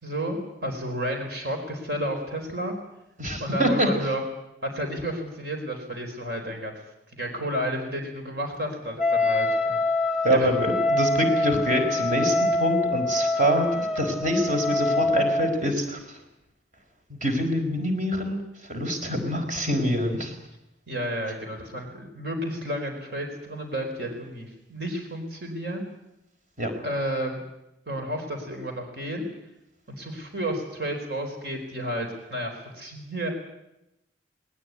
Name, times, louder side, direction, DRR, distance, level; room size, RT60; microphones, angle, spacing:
voice 1, 0.0-2.7 3.4-4.2 4.6-6.7 7.1-9.8 10.3-10.5 20.9-25.8 26.8-27.4 27.9-29.3 29.9-33.3, equal, 55° right, 3 dB, 4.5 m, -31 dB
voice 2, 3.2-3.9 10.2-16.2 17.1-20.3 26.6-26.7, equal, 40° right, 5 dB, 4.8 m, -25 dB
Wind instrument woodwind instrument, 9.0-15.6, left 2 dB, 5° right, 1.8 m, -25 dB
20.0 x 20.0 x 9.5 m, 0.88 s
head